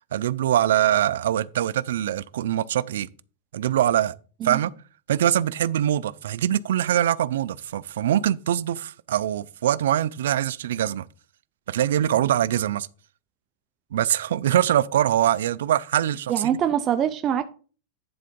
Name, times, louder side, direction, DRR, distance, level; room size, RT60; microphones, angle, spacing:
voice 1, 0.1-3.1 3.5-4.1 4.4-4.7 5.1-11.1 11.7-12.9 13.9-16.5, right 11 dB, 85° right, 0.4 m, -23 dB
voice 2, 16.3-17.4, right 9 dB, 25° right, 0.5 m, -24 dB
10.0 x 3.8 x 5.2 m
supercardioid pair, 155°, 0 cm